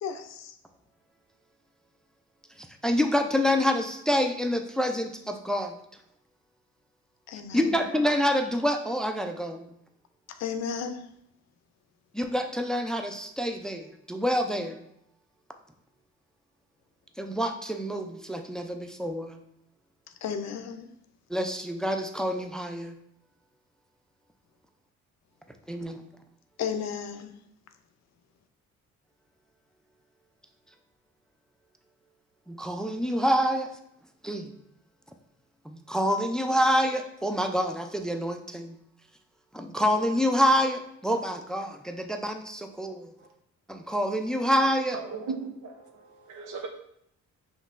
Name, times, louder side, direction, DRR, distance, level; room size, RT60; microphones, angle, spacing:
voice 1, 0.0-0.6 7.3-7.7 10.3-11.1 20.2-20.9 26.6-27.3, left 7 dB, 60° left, 8 dB, 0.5 m, -34 dB
voice 2, 2.8-5.7 7.5-9.7 12.1-14.8 17.2-19.4 21.3-22.9 25.7-26.0 32.5-33.7 34.2-34.5 35.7-38.8 39.5-43.1 43.7-45.0, equal, ahead, 5 dB, 0.3 m, -27 dB
voice 3, 45.0-46.7, right 4 dB, 80° right, 3 dB, 0.8 m, -37 dB
5.3 x 3.1 x 2.5 m, 0.77 s
cardioid pair, 90°, 30 cm